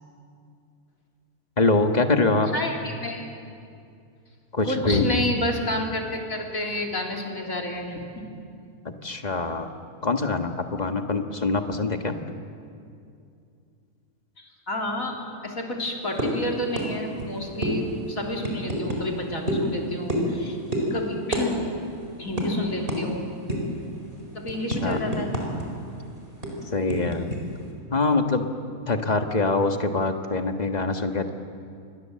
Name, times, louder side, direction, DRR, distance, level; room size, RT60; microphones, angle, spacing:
voice 1, 1.6-2.5 4.5-5.3 8.8-9.7 10.0-12.1 24.7-25.0 26.7-27.3 27.9-28.5 28.9-31.3, left 3 dB, 30° left, 5 dB, 1.5 m, -24 dB
voice 2, 2.5-3.3 4.6-8.3 14.4-20.6 20.9-21.6 22.2-23.3 24.3-25.3, left 1 dB, 65° left, 0 dB, 3.6 m, -30 dB
sound 1, 16.2-16.4 16.8-16.9 17.2-17.3 17.6-17.8 18.4-19.0 19.5-19.7 20.1-20.4 20.7-20.9 21.3-21.5 21.7-21.9 22.4-22.5 22.9-23.0 23.5-23.8 24.2-25.7 25.9-26.0 26.4-27.4, right 1 dB, 35° right, 4.7 m, -27 dB
28.5 x 23.0 x 7.6 m, 2.4 s
omnidirectional pair, 1.6 m